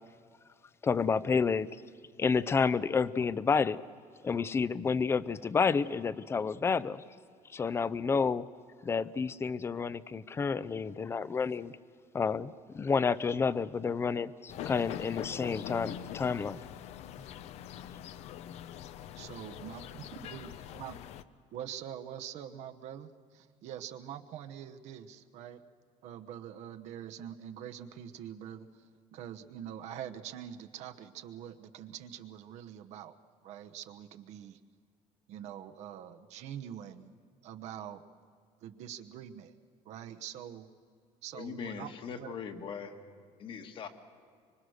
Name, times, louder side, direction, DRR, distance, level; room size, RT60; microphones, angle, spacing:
voice 1, 0.8-1.7 2.2-3.8 4.2-7.0 7.5-8.5 8.8-11.7 12.1-16.6, left 5 dB, 20° left, 18 dB, 0.5 m, -30 dB
sound 1, 14.5-21.2, left 11 dB, 65° left, 0.7 m, -43 dB
voice 2, 19.2-20.5 20.8-20.9 21.5-25.6 26.0-28.7 29.1-33.1 33.4-34.6 35.3-37.1 37.4-38.0 38.6-39.5 39.9-40.7 41.2-41.9 42.2-42.3, right 10 dB, 65° right, 7 dB, 1.0 m, -44 dB
voice 3, 41.3-43.0 43.4-43.9, left 6 dB, 45° left, 7 dB, 1.7 m, -41 dB
25.0 x 24.0 x 6.5 m, 2.2 s
cardioid pair, 155°, 12 cm